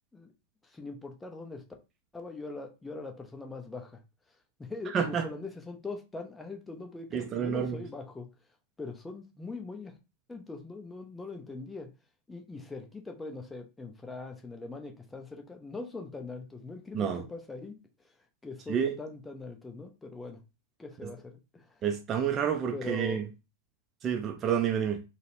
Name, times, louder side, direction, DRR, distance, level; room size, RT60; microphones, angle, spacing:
voice 1, 0.6-1.7 2.1-4.0 4.3-8.3 8.8-10.0 10.3-11.9 12.3-18.1 18.4-20.4 20.8-21.8 22.7-23.3, left 3 dB, 10° left, 0.7 m, -42 dB
voice 2, 4.9-5.2 7.1-7.7 16.9-17.2 18.7-19.0 21.0-21.1 21.8-23.2 24.0-25.0, right 8 dB, 25° right, 0.4 m, -29 dB
3.9 x 2.1 x 2.7 m
figure-of-eight pair, 90°, 0 cm